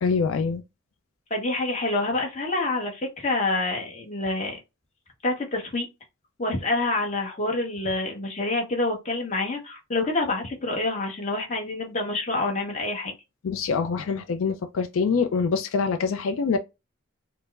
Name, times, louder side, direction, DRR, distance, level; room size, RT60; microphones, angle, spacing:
voice 1, 0.0-0.6 13.4-16.6, left 5 dB, 85° left, 0.4 m, -25 dB
voice 2, 1.3-4.6 5.2-5.9 6.4-13.1, left 2 dB, 35° left, 1.0 m, -27 dB
4.4 x 2.0 x 2.3 m
head